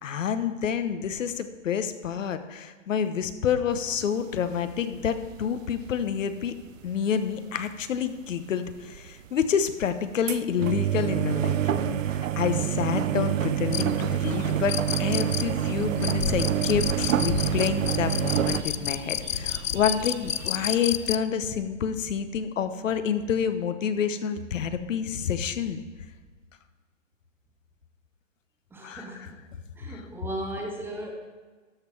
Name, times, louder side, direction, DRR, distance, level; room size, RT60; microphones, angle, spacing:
voice 1, 0.0-6.6 6.8-25.8 28.8-29.1 29.9-30.0, left 7 dB, 80° left, 10 dB, 1.0 m, -28 dB
sound 1, 3.8-6.6 7.5-7.6 7.9-8.0 8.3-8.4 8.7-9.1 9.4-9.6 10.0-18.6, right 11 dB, 90° right, 0.6 m, -27 dB
sound 2, 13.3-20.9, right 6 dB, 35° right, 1.0 m, -43 dB
sound 3, 13.7-21.2, left 11 dB, 55° left, 0.4 m, -31 dB
voice 2, 28.7-29.4 29.8-31.1, right 1 dB, 5° right, 0 dB, 0.7 m, -36 dB
12.5 x 5.6 x 4.5 m, 1.4 s
hypercardioid pair, 145°, 38 cm